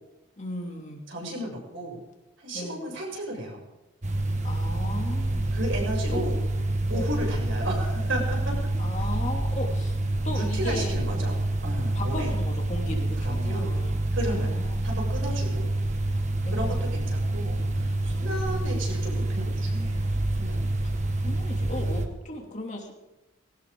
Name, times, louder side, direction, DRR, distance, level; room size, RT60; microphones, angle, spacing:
voice 1, 0.4-1.0 2.5-2.8 4.4-5.5 6.1-6.2 6.9-7.1 8.8-10.0 10.2-11.0 11.9-14.8 16.4-16.9 18.1-18.3 21.2-22.9, left 1 dB, 35° left, 1 dB, 2.7 m, -36 dB
voice 2, 1.1-2.0 2.4-3.6 5.5-6.4 6.9-8.6 10.3-12.3 13.2-13.7 14.1-14.6 14.8-15.7 16.1-16.2 16.5-20.1 20.4-20.7, right 1 dB, 65° right, -1 dB, 7.2 m, -34 dB
sound 1, 4.0-22.1, right 1 dB, 35° right, 1.6 m, -27 dB
20.5 x 18.0 x 3.8 m, 0.99 s
head